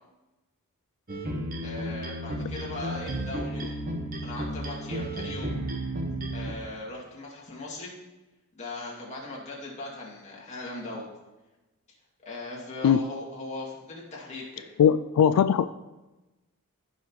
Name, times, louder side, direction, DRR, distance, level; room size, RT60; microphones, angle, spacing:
sound 1, 1.1-6.5, right 1 dB, 40° right, 1.1 m, -33 dB
voice 1, 1.6-3.8 4.2-5.5 6.3-7.9 8.5-11.1 12.2-14.6, left 2 dB, 30° left, -4 dB, 2.4 m, -39 dB
voice 2, 14.8-15.7, left 8 dB, 85° left, 14 dB, 0.3 m, -20 dB
15.0 x 5.7 x 3.1 m, 1.1 s
head